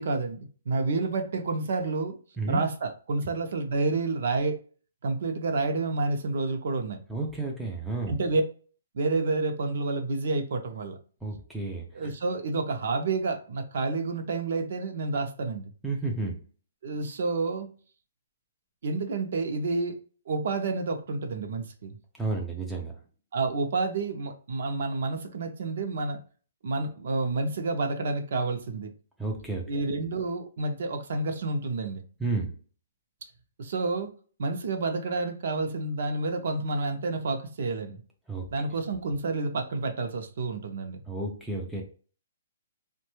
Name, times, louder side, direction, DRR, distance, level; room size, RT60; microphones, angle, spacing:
voice 1, 0.0-2.2 2.5-4.6 5.0-7.0 8.1-8.4 8.9-11.0 11.9-15.6 16.8-17.7 18.8-20.0 20.3-22.0 23.3-26.2 26.6-28.9 29.7-32.0 33.6-34.1 34.4-38.0 38.5-41.0, right 3 dB, 50° right, 5 dB, 0.5 m, -29 dB
voice 2, 7.1-8.2 11.2-12.1 15.8-16.3 22.2-22.9 29.2-29.6 32.2-32.5 38.3-38.4 41.1-41.8, right 3 dB, ahead, -2 dB, 0.3 m, -31 dB
3.1 x 2.2 x 3.0 m, 0.39 s
hypercardioid pair, 175°, 0 cm